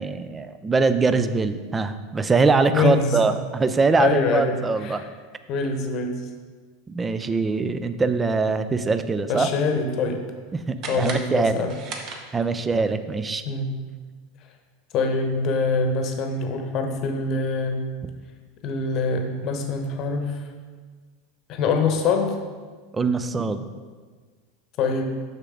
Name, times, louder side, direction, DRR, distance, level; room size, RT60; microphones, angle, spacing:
voice 1, 0.0-5.0 6.9-9.5 10.5-11.7 12.3-13.4 22.9-23.7, right 4 dB, 20° right, 11 dB, 0.4 m, -23 dB
voice 2, 2.7-3.2 4.0-5.0 5.5-6.3 9.3-10.2 10.8-11.7 13.5-13.7 14.9-17.8 18.6-20.4 21.5-22.3 24.8-25.1, left 4 dB, 50° left, 5 dB, 0.9 m, -24 dB
sound 1, 10.8-12.7, right 4 dB, 45° right, 0.9 m, -37 dB
6.5 x 5.9 x 3.7 m, 1.5 s
hypercardioid pair, 85°, 0 cm